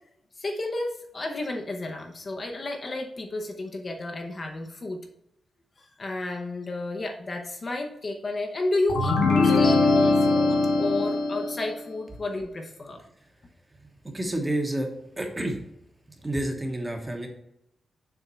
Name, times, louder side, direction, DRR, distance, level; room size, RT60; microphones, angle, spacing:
voice 1, 0.4-5.0 5.8-13.0, left 2 dB, 30° left, 3 dB, 0.7 m, -32 dB
sound 1, 8.9-11.7, left 3 dB, 85° left, 1.6 m, -21 dB
voice 2, 14.1-14.9 15.2-15.6 16.2-17.3, right 1 dB, 15° right, 2 dB, 1.0 m, -29 dB
6.9 x 3.6 x 5.5 m, 0.79 s
wide cardioid pair, 175°, 0 cm